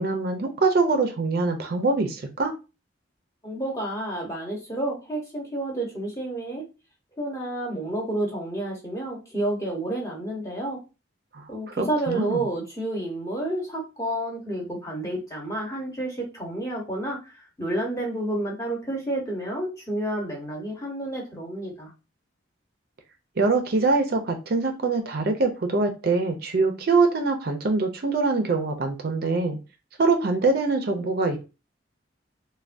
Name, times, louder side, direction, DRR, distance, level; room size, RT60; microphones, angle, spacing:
voice 1, 0.0-2.5 11.3-11.4 11.8-12.4 23.4-29.6 30.0-31.4, right 3 dB, 50° right, 5 dB, 0.4 m, -23 dB
voice 2, 3.4-6.6 7.1-10.8 11.5-17.3 17.6-21.9, right 1 dB, 15° left, -1 dB, 0.9 m, -30 dB
3.3 x 2.2 x 2.5 m, 0.29 s
head